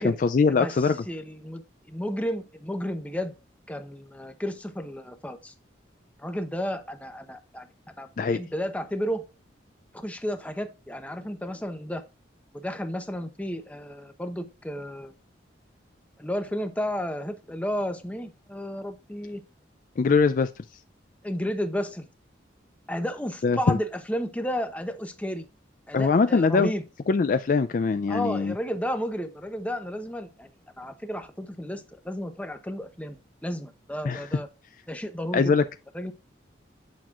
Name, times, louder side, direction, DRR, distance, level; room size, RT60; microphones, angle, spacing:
voice 1, 0.0-1.0 8.2-8.4 20.0-20.5 23.4-23.8 25.9-26.7 27.1-28.5 34.0-34.3 35.3-35.7, left 4 dB, 45° left, 0.3 m, -22 dB
voice 2, 1.1-1.6 1.9-3.3 3.7-5.5 6.2-7.7 8.0-9.2 9.9-12.0 12.5-15.1 16.2-19.4 21.2-22.1 22.9-25.5 25.9-26.8 28.1-30.5 30.8-34.5 34.9-35.6 35.9-36.1, equal, 5° left, 0.7 m, -32 dB
8.4 x 6.0 x 2.4 m
head